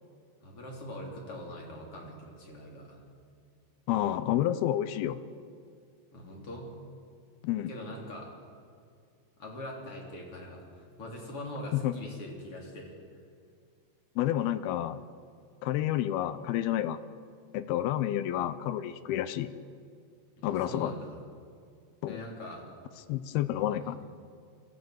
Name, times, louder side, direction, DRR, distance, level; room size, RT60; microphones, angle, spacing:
voice 1, 0.4-3.0 6.1-6.7 7.7-8.3 9.4-12.9 20.4-21.2 22.0-22.7 23.8-23.9, left 1 dB, 35° left, -1 dB, 3.9 m, -42 dB
voice 2, 3.9-5.2 7.4-7.7 11.7-11.9 14.2-15.0 15.6-17.0 17.5-19.5 20.4-20.9 22.0-22.2 23.1-24.0, left 12 dB, 80° left, 12 dB, 2.4 m, -29 dB
24.5 x 14.5 x 7.8 m, 2.2 s
omnidirectional pair, 4.9 m